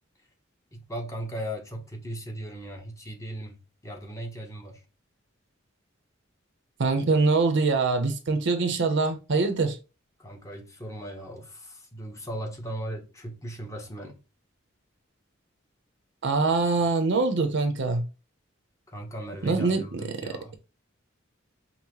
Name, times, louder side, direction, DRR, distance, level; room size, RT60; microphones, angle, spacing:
voice 1, 0.7-4.8 10.2-14.2 18.9-20.5, right 1 dB, 15° left, 0.9 m, -38 dB
voice 2, 6.8-9.8 16.2-18.0 19.4-20.2, right 3 dB, 60° right, 0.7 m, -24 dB
5.4 x 2.1 x 3.0 m
head